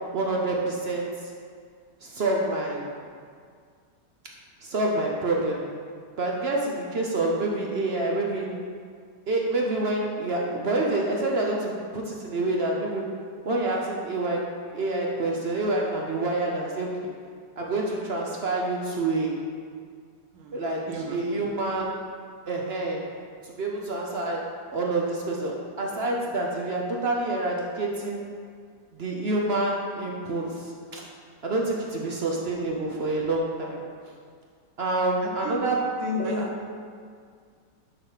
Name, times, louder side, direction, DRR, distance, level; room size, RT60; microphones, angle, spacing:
voice 1, 0.1-1.3 2.0-2.9 4.6-5.6 6.2-8.5 9.3-13.0 13.4-14.4 14.7-16.9 17.6-19.4 20.5-20.8 21.1-22.0 22.5-23.0 23.4-24.4 24.7-28.2 29.0-31.0 31.4-33.8 34.8-35.8 36.2-36.5, right 2 dB, 55° right, -1 dB, 0.7 m, -27 dB
voice 2, 20.9-21.2 31.6-31.7 35.2-35.6 36.0-36.7, left 1 dB, 85° right, 1 dB, 1.6 m, -32 dB
7.4 x 4.1 x 5.7 m, 2.1 s
omnidirectional pair, 1.9 m